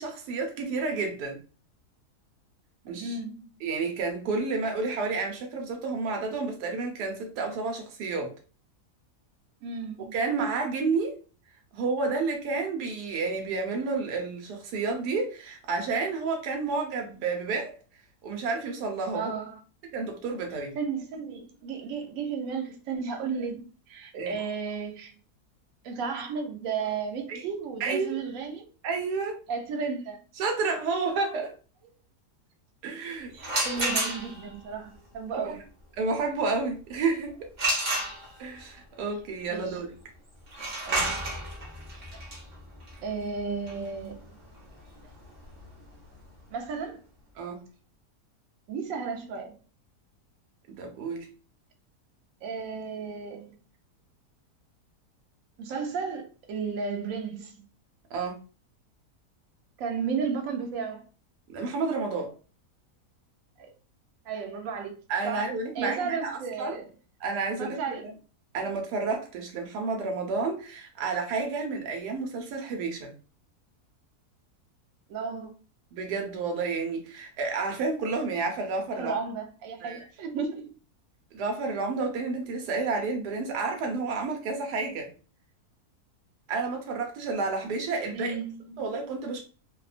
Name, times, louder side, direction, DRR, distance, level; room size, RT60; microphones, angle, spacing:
voice 1, 0.0-1.4 2.8-3.1 3.6-8.3 10.1-11.2 11.7-17.7 18.2-19.3 19.9-20.7 24.1-24.3 27.3-27.4 27.8-28.2 28.8-29.4 30.4-31.5 32.8-33.3 35.3-35.6 36.0-37.5 38.4-40.0 42.1-42.2 47.4-47.6 50.7-51.3 58.1-58.4 61.5-62.3 65.1-66.8 67.2-68.1 68.5-73.1 75.9-79.1 79.8-80.0 81.3-85.1 86.5-88.4 88.8-89.4, right 4 dB, 90° right, 1.2 m, -30 dB
voice 2, 2.9-3.4 9.6-10.2 19.1-19.6 20.7-25.1 25.8-28.7 29.5-30.2 33.3-35.6 39.5-39.8 40.8-41.3 43.0-44.2 46.5-47.0 48.7-49.5 52.4-53.6 55.6-57.6 59.8-61.1 63.6-63.7 64.2-64.9 65.2-66.9 67.6-68.0 75.1-75.5 78.9-80.7 88.1-88.9, right 5 dB, 65° right, 0.9 m, -34 dB
sound 1, 33.4-34.6 37.6-38.6 40.5-46.1, right 1 dB, 40° right, 0.6 m, -31 dB
2.8 x 2.1 x 2.4 m
omnidirectional pair, 1.7 m